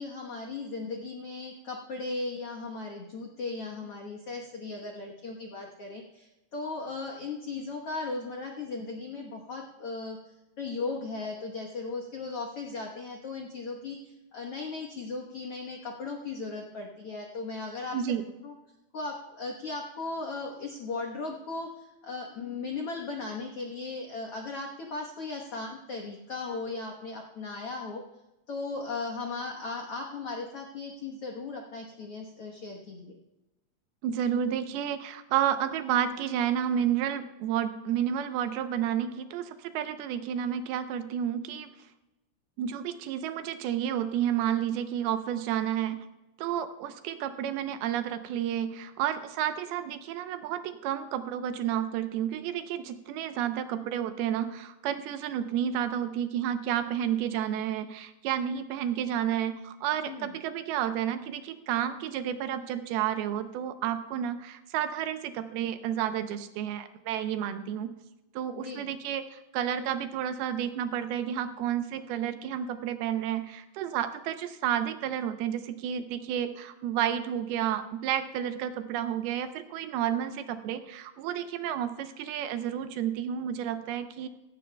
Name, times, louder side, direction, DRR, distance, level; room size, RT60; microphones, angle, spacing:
voice 1, 0.0-18.0 18.4-18.5 18.9-28.0 28.5-33.2 60.0-60.4 68.5-68.9, left 3 dB, 85° left, 1 dB, 1.2 m, -37 dB
voice 2, 34.0-41.7 42.6-46.0 46.4-67.9 68.3-84.3, right 10 dB, 80° right, 9 dB, 2.6 m, -31 dB
16.5 x 15.5 x 2.3 m, 1.0 s
omnidirectional pair, 4.6 m